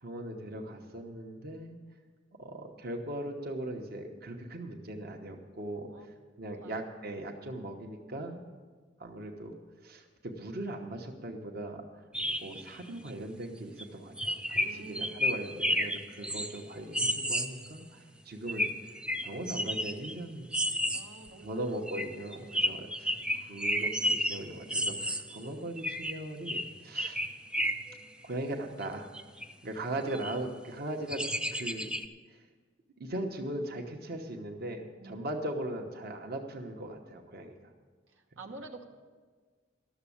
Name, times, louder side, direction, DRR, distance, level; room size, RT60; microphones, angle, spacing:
voice 1, 0.0-1.8 2.4-5.9 6.4-8.4 9.0-9.6 9.8-12.0 12.4-18.7 19.2-20.6 21.4-27.2 27.6-27.7 28.2-29.1 29.6-31.2 31.5-31.9 32.3-32.4 33.0-37.7, right 1 dB, 55° right, 3 dB, 1.1 m, -39 dB
sound 1, 12.1-12.8 13.1-13.2 13.8-13.9 14.2-17.8 18.5-20.2 20.5-21.3 21.9-25.5 25.8-28.0 28.8-28.9 29.1-29.5 30.1-30.4 31.1-32.1, equal, 5° right, 0.5 m, -32 dB
voice 2, 14.6-15.7 16.2-16.4 20.9-21.8 22.3-22.9 30.1-30.2 35.0-35.4 38.1-38.8, right 3 dB, 85° right, 3 dB, 1.2 m, -49 dB
12.5 x 7.1 x 8.5 m, 1.5 s
head